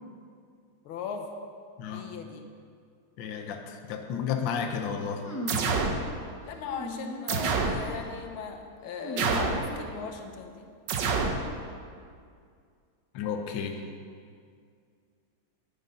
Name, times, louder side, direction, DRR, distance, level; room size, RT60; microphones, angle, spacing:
voice 1, 0.9-1.3 1.9-2.4 6.4-10.7, left 6 dB, 90° left, 5 dB, 1.7 m, -38 dB
voice 2, 3.2-5.2 13.1-13.8, left 7 dB, 70° left, 5 dB, 1.5 m, -32 dB
sound 1, 5.2-5.8 6.6-7.3 7.7-8.1 8.9-10.1, left 1 dB, 25° left, 0.3 m, -39 dB
sound 2, 5.5-6.0 7.3-7.8 9.2-9.7 10.9-11.4, right 4 dB, 65° right, 1.5 m, -27 dB
9.9 x 9.4 x 5.4 m, 2.2 s
omnidirectional pair, 2.2 m